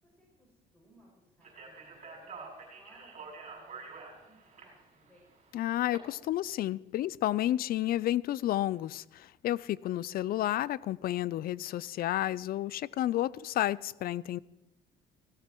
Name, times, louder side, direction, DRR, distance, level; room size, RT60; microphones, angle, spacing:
voice 1, 0.0-5.2, equal, 10° left, -4 dB, 6.1 m, -63 dB
Speech, 1.4-6.0, right 4 dB, 45° right, 6.2 m, -48 dB
voice 2, 5.5-14.4, left 13 dB, 60° left, 22 dB, 0.5 m, -31 dB
17.5 x 17.0 x 4.6 m, 0.95 s
cardioid pair, 110°, 17 cm